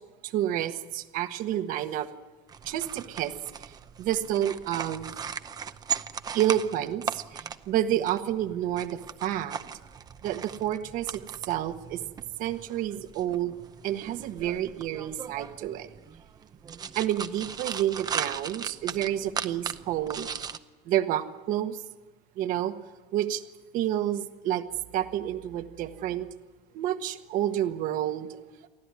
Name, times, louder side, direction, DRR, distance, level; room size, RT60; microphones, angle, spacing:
voice 1, 0.2-2.1 2.6-3.3 3.6-5.1 6.3-9.6 10.2-12.0 12.4-13.5 13.8-15.9 16.9-20.3 20.9-21.8 22.4-22.7 23.1-23.4 23.7-24.6 24.9-26.3 26.7-28.7, right 12 dB, 55° right, 9 dB, 1.4 m, -29 dB
sound 1, 2.5-20.6, right 7 dB, 25° right, 0.7 m, -38 dB
24.0 x 15.0 x 9.7 m, 1.3 s
cardioid pair, 150°, 17 cm